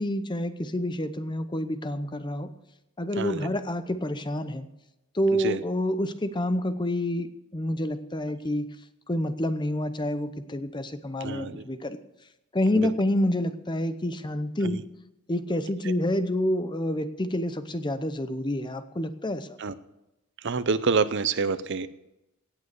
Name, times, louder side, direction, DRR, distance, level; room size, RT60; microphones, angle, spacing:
voice 1, 0.0-2.5 3.0-4.7 5.1-8.7 9.1-12.0 12.5-14.8 15.3-19.6, left 1 dB, 20° left, 11 dB, 0.7 m, -28 dB
voice 2, 3.2-3.5 5.3-5.6 11.2-11.6 12.8-12.9 14.6-14.8 15.8-15.9 19.6-19.7 20.4-21.9, right 4 dB, 55° right, 14 dB, 0.6 m, -27 dB
17.0 x 7.0 x 6.7 m, 0.93 s
head